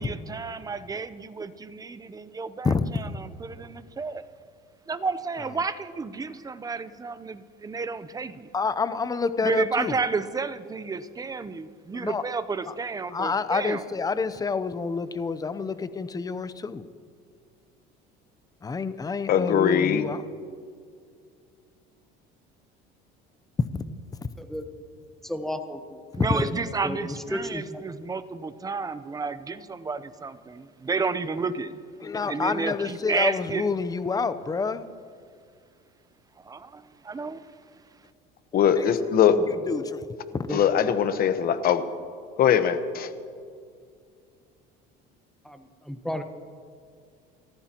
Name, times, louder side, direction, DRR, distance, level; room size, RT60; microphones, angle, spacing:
voice 1, 0.0-4.2 4.9-8.5 9.4-13.8 26.2-31.8 32.3-33.7 36.4-37.6, right 4 dB, 20° right, 13 dB, 0.7 m, -31 dB
voice 2, 2.6-3.0 5.3-5.6 8.5-10.0 11.9-12.3 12.7-12.8 13.1-16.9 18.6-20.2 23.7-23.8 26.1-26.4 32.0-34.9 38.5-38.9 39.5-40.0 40.3-40.5, left 4 dB, 20° left, 13 dB, 0.7 m, -28 dB
voice 3, 19.3-20.0 38.5-39.4 40.5-41.8 42.4-43.1, left 9 dB, 50° left, 10 dB, 1.1 m, -21 dB
voice 4, 25.2-26.0 26.3-26.5 26.8-27.8 40.5-40.6 45.4-46.2, left 1 dB, ahead, 7 dB, 1.2 m, -33 dB
29.0 x 14.5 x 3.0 m, 2.2 s
cardioid pair, 110°, 20 cm